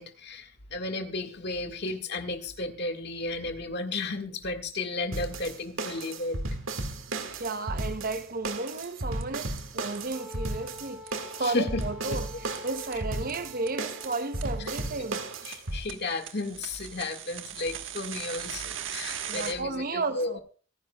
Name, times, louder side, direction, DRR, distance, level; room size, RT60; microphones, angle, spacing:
voice 1, 0.0-6.4 11.4-11.8 12.1-12.2 15.5-20.4, left 2 dB, 55° left, 1.7 m, -33 dB
sound 1, 5.1-15.8, right 2 dB, 85° right, 1.8 m, -35 dB
voice 2, 7.3-15.2 19.3-20.4, right 3 dB, 45° right, 0.8 m, -33 dB
sound 2, 8.5-8.6 8.8-8.9 9.2-9.3 9.6-9.7 9.9-10.0 10.3-10.4 10.7-10.8 11.1-11.2 11.4-11.5 11.8-11.9 12.2-12.3 12.5-12.6 12.9-13.0 13.3-13.4 13.7-13.8 14.0-14.1 14.4-14.5 14.8-14.9 15.1-19.5, right 9 dB, 70° right, 1.3 m, -39 dB
Wind instrument woodwind instrument, 10.1-15.3, left 2 dB, 10° right, 2.6 m, -47 dB
25.5 x 10.5 x 2.3 m
head